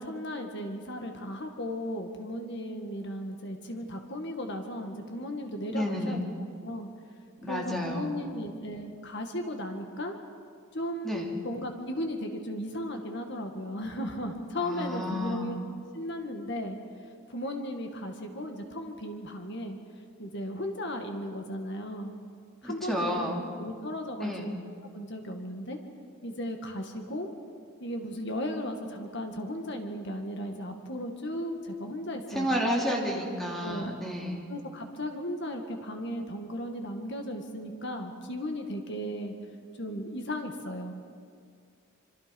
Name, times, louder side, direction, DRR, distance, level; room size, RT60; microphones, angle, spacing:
voice 1, 0.0-6.2 6.6-6.9 7.4-10.2 10.7-15.6 15.9-16.8 17.3-19.8 20.2-22.1 22.6-23.3 23.6-24.5 24.9-25.8 26.2-27.3 27.8-32.9 33.6-33.9 34.5-39.3 39.8-40.9, left 1 dB, 50° left, 4 dB, 2.0 m, -36 dB
voice 2, 5.7-6.2 7.4-8.3 11.0-11.3 14.6-15.6 22.6-23.5 24.2-24.5 32.3-34.5, equal, ahead, -2 dB, 3.0 m, -31 dB
26.0 x 25.5 x 5.4 m, 2.2 s
head